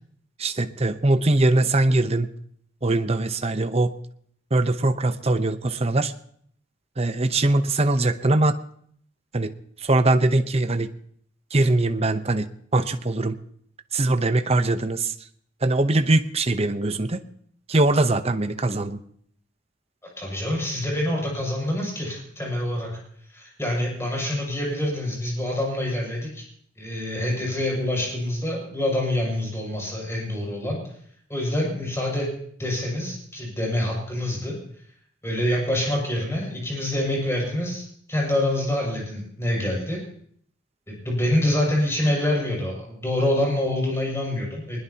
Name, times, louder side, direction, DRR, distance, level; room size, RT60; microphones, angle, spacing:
voice 1, 0.4-2.3 2.8-4.0 4.5-6.1 7.0-8.6 9.3-9.5 9.8-10.9 11.5-13.4 13.9-15.1 15.6-17.2 17.7-19.0, right 2 dB, 30° right, 9 dB, 0.9 m, -22 dB
voice 2, 20.2-22.9 23.3-26.4 26.8-30.8 31.3-32.3 32.6-34.5 35.2-40.0 40.9-44.8, left 1 dB, 15° left, -2 dB, 6.7 m, -26 dB
22.5 x 20.0 x 2.9 m, 0.64 s
head